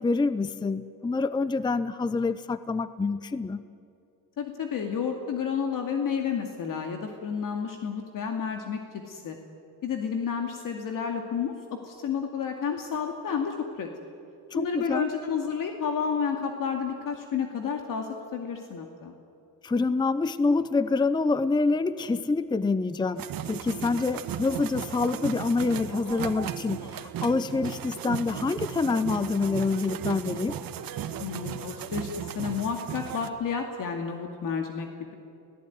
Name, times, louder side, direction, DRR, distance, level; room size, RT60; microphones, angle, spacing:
voice 1, 0.0-3.6 14.5-15.1 19.6-30.6, left 3 dB, 10° left, 14 dB, 0.6 m, -26 dB
voice 2, 4.4-8.8 9.1-9.4 9.8-11.5 11.8-13.9 14.5-19.1 23.7-24.1 31.2-35.1, left 6 dB, 60° left, 3 dB, 2.4 m, -31 dB
sound 1, 23.2-33.3, right 9 dB, 65° right, 1.5 m, -36 dB
28.5 x 17.5 x 9.5 m, 2.6 s
cardioid pair, 130°, 37 cm